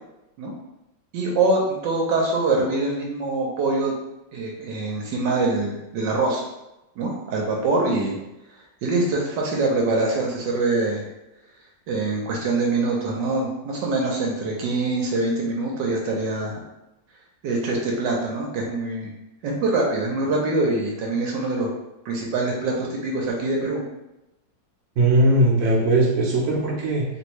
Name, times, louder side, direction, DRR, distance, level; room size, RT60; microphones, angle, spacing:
voice 1, 1.1-3.9 4.3-6.4 7.0-8.2 8.8-11.0 11.9-16.6 17.4-19.1 19.4-21.7 22.0-23.8, right 2 dB, 75° right, -1 dB, 1.2 m, -24 dB
voice 2, 25.0-27.0, right 1 dB, 55° right, -3 dB, 1.0 m, -19 dB
3.2 x 2.6 x 3.0 m, 0.94 s
omnidirectional pair, 2.0 m